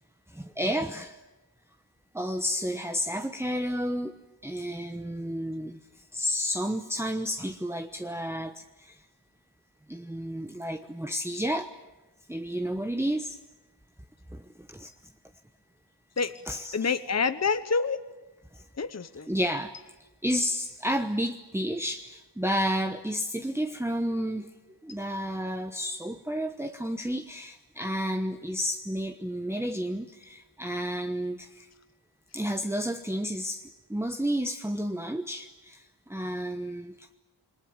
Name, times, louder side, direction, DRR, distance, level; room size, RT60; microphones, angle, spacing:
voice 1, 0.3-1.2 2.1-4.2 4.4-5.8 6.1-9.0 9.9-11.7 12.3-13.4 14.3-14.4 14.7-14.9 16.5-16.9 19.3-19.7 20.2-24.5 24.8-31.7 32.3-33.6 33.9-35.8 36.1-37.1, equal, 5° right, 6 dB, 1.1 m, -31 dB
voice 2, 16.7-18.0 18.8-19.3, left 5 dB, 35° left, 11 dB, 1.0 m, -27 dB
28.5 x 22.0 x 8.8 m, 1.1 s
wide cardioid pair, 90°, 43 cm